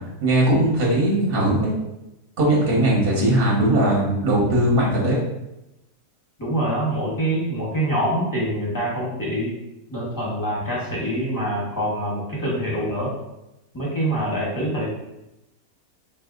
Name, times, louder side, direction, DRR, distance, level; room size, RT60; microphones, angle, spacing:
voice 1, 0.2-1.7 2.4-5.2, right 1 dB, 40° right, -4 dB, 1.0 m, -19 dB
voice 2, 6.4-9.5 9.9-13.1 13.7-14.9, right 1 dB, 15° left, -5 dB, 1.1 m, -25 dB
4.0 x 2.6 x 3.7 m, 0.91 s
omnidirectional pair, 1.6 m